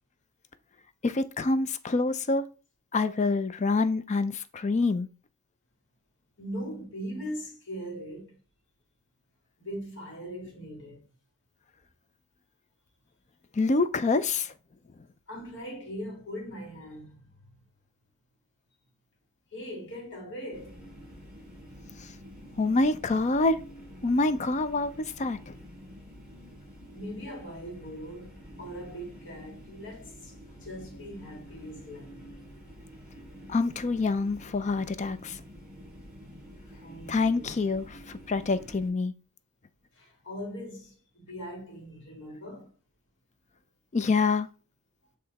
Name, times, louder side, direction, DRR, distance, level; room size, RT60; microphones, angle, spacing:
voice 1, 1.0-2.4 2.9-5.1 13.6-14.5 22.6-23.6 24.0-25.5 33.5-35.4 37.1-39.1 43.9-44.5, left 3 dB, 30° left, 0.4 m, -26 dB
voice 2, 6.4-8.4 9.6-11.0 15.3-17.3 19.5-20.8 26.9-32.2 36.7-37.5 39.9-42.7, equal, 55° left, 2.2 m, -40 dB
sound 1, 20.5-38.9, equal, 5° right, 3.2 m, -48 dB
7.8 x 3.2 x 4.0 m
head